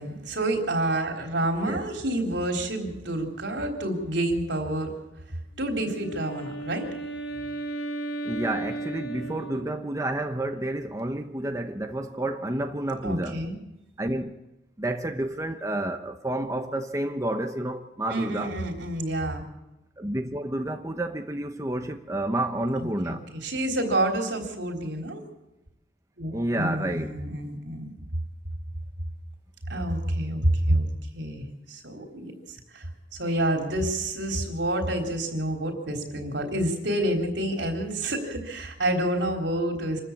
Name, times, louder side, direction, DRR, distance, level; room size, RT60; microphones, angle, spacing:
voice 1, 0.0-4.9 5.6-6.9 13.0-13.6 18.1-19.4 22.8-25.2 26.2-27.9 29.7-30.9 31.1-40.0, right 1 dB, 75° right, 3.8 m, -28 dB
Wind instrument woodwind instrument, 5.6-10.1, right 2 dB, 60° left, 1.9 m, -35 dB
voice 2, 8.2-13.4 14.0-14.4 14.8-18.5 20.0-23.3 26.3-27.2, right 1 dB, 15° right, 0.9 m, -30 dB
26.0 x 14.0 x 8.5 m
head